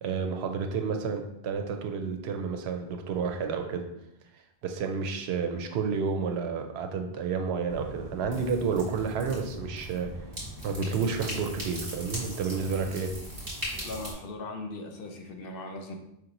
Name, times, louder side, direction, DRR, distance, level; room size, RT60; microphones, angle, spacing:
voice 1, 0.0-3.8 4.6-10.1 10.6-13.1, right 5 dB, 85° right, 5 dB, 0.8 m, -30 dB
sound 1, 7.7-14.1, right 1 dB, 40° right, 1.7 m, -39 dB
voice 2, 13.8-16.0, left 2 dB, 65° left, 3 dB, 0.8 m, -39 dB
4.9 x 2.9 x 2.6 m, 0.80 s
omnidirectional pair, 1.1 m